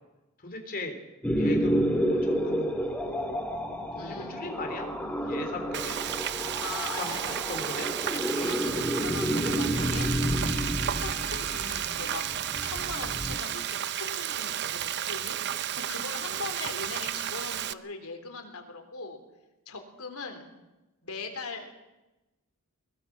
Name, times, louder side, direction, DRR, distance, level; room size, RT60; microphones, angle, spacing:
voice 1, 0.4-1.0 1.4-3.4 4.0-4.9 5.3-5.9 6.4-7.9, left 2 dB, 40° left, 4 dB, 3.2 m, -38 dB
sound 1, 1.2-13.4, equal, 5° left, 2.1 m, -30 dB
voice 2, 4.0-4.5 6.6-7.4 8.1-10.2 10.4-12.3 12.6-19.2 19.7-20.5 21.0-21.8, left 4 dB, 75° left, 5 dB, 3.5 m, -40 dB
Frying (food), 5.7-17.7, right 10 dB, 50° right, 0.6 m, -32 dB
22.0 x 20.5 x 6.1 m, 1.0 s
head